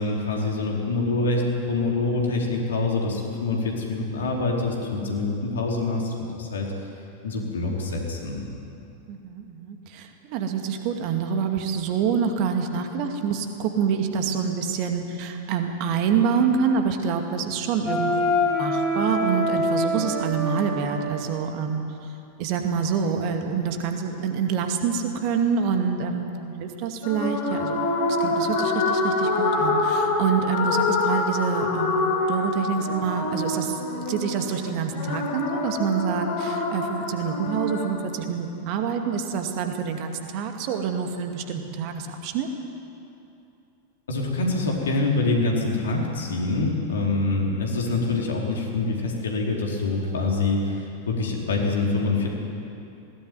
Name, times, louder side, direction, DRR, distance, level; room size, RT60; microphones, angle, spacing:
voice 1, 0.0-1.4 1.7-6.7 7.2-8.5 44.1-52.3, left 3 dB, 65° left, -1 dB, 4.5 m, -25 dB
voice 2, 7.4-7.7 9.1-21.8 22.4-27.8 28.2-42.5, right 6 dB, 45° right, 5 dB, 2.3 m, -27 dB
Wind instrument woodwind instrument, 17.9-21.1, left 1 dB, 15° left, 5.6 m, -25 dB
sound 1, 27.0-38.0, left 2 dB, 50° left, 4.4 m, -26 dB
20.0 x 18.5 x 9.6 m, 2.8 s
figure-of-eight pair, 90°, 0 cm